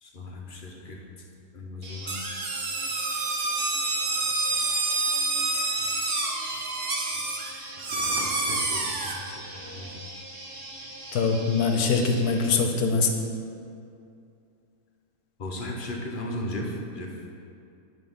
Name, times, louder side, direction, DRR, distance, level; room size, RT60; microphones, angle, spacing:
voice 1, 0.0-1.0 1.5-2.2 8.2-9.2 9.7-10.1 15.4-17.1, left 1 dB, 40° left, 0 dB, 0.8 m, -36 dB
sound 1, 1.8-12.5, right 1 dB, 65° right, 2.0 m, -42 dB
sound 2, 2.1-9.2, right 3 dB, 45° right, 0.9 m, -28 dB
voice 2, 11.1-13.1, left 4 dB, 70° left, 4 dB, 1.3 m, -23 dB
10.5 x 3.8 x 5.4 m, 2.5 s
omnidirectional pair, 1.7 m